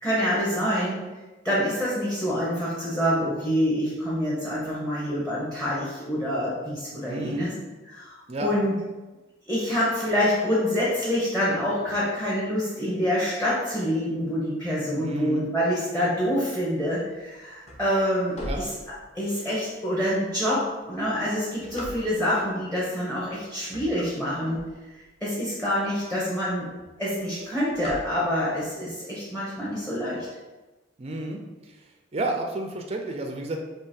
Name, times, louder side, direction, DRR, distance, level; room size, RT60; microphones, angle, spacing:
voice 1, 0.0-1.0 1.4-7.5 7.9-8.1 8.4-8.7 9.5-18.7 19.1-24.6 24.9-26.7 27.0-30.3, equal, 10° left, -7 dB, 0.9 m, -26 dB
voice 2, 7.0-7.5 8.3-8.5 14.9-15.4 18.4-18.6 31.0-31.8 32.1-33.6, right 1 dB, 35° right, 2 dB, 0.4 m, -31 dB
sound 1, 17.4-19.4 20.0-20.1 20.8-22.5 23.1-23.3 23.6-25.2 25.7-25.8 26.0-26.1 26.4-26.7 27.0-28.6, equal, 40° left, 1.0 m, -39 dB
3.7 x 2.8 x 4.3 m, 1.2 s
head